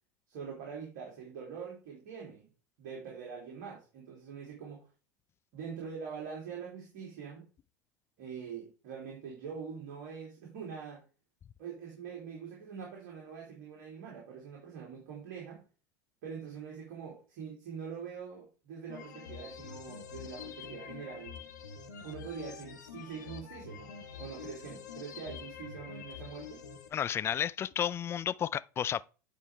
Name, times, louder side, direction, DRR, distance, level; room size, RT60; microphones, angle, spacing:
voice 1, 0.3-2.5 2.8-4.9 5.5-7.5 8.2-11.0 11.6-15.6 16.2-21.4 22.0-26.7, right 6 dB, 55° right, 2.9 m, -44 dB
sound 1, 18.9-26.9, left 7 dB, 75° left, 1.4 m, -46 dB
voice 2, 26.9-29.0, left 9 dB, 25° left, 0.4 m, -32 dB
9.9 x 4.6 x 3.3 m
figure-of-eight pair, 80°, 10 cm